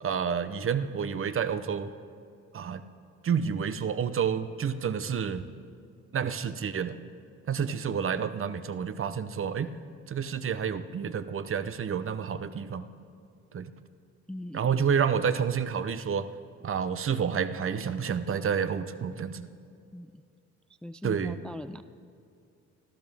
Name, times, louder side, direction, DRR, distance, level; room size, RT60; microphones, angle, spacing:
voice 1, 0.0-1.9 2.5-2.8 3.2-5.4 6.1-7.0 7.5-9.7 10.1-12.9 13.5-13.7 14.5-16.3 16.6-19.5 21.0-21.4, right 7 dB, 45° right, 12 dB, 0.8 m, -29 dB
voice 2, 14.3-14.7 19.9-20.2 20.8-21.8, left 1 dB, 5° left, 13 dB, 0.3 m, -40 dB
24.5 x 14.5 x 3.5 m, 2.4 s
cardioid pair, 90°, 30 cm